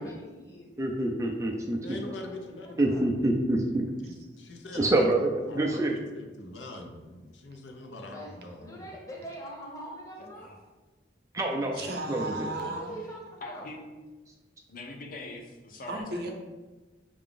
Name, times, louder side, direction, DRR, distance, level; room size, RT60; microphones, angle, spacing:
voice 1, 0.0-0.7 2.0-3.0 7.8-10.5 12.5-13.7, right 1 dB, 15° left, -2 dB, 0.8 m, -44 dB
voice 2, 0.8-2.0 2.8-3.9 4.7-5.9 11.3-11.8 12.1-12.5, right 1 dB, 15° right, 1 dB, 0.3 m, -26 dB
voice 3, 1.8-2.9 4.0-5.1 5.4-8.9, left 1 dB, 80° left, 3 dB, 0.7 m, -42 dB
voice 4, 10.2-10.6 11.7-12.0 12.5-12.8 13.4-13.8 14.7-16.3, left 2 dB, 50° left, 0 dB, 0.7 m, -43 dB
voice 5, 11.8-13.0 15.9-16.3, right 2 dB, 55° right, 2 dB, 0.6 m, -34 dB
5.8 x 2.5 x 3.7 m, 1.2 s
head